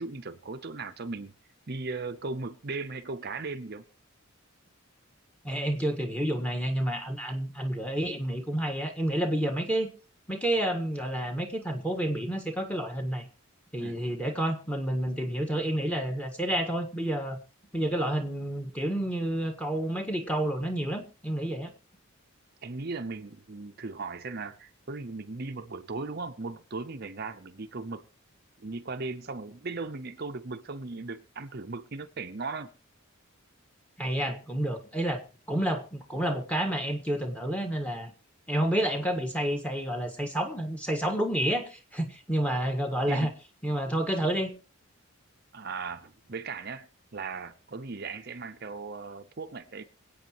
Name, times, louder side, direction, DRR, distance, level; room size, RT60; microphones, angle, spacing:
voice 1, 0.0-1.3 1.7-3.8 13.8-14.0 22.6-28.0 28.6-32.7 43.1-43.3 45.5-49.8, right 3 dB, 45° right, 0.7 m, -37 dB
voice 2, 5.4-9.9 10.3-13.2 13.7-17.4 17.7-21.7 34.0-35.2 35.5-38.1 38.5-43.3 43.6-44.5, right 1 dB, 5° left, 1.6 m, -29 dB
26.0 x 8.6 x 3.0 m
head